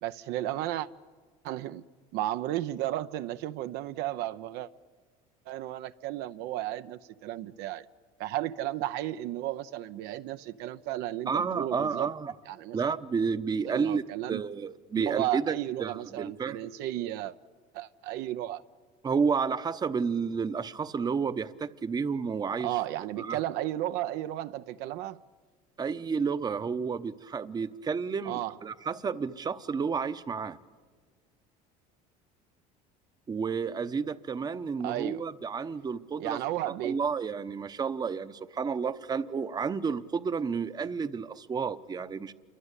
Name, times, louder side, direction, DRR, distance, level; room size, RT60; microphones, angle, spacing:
voice 1, 0.0-0.9 1.4-1.8 2.1-4.7 5.5-7.8 8.2-12.1 12.5-12.8 13.7-14.4 14.9-17.3 17.7-18.6 22.6-25.2 28.3-28.5 34.8-35.2 36.2-37.0, right 14 dB, 70° right, 0.7 m, -33 dB
voice 2, 11.3-12.3 12.7-14.0 14.3-16.7 19.0-22.8 23.2-23.4 25.8-30.6 33.3-36.4 36.7-42.3, right 5 dB, 20° right, 0.9 m, -31 dB
28.0 x 23.5 x 8.3 m
supercardioid pair, 120°, 18 cm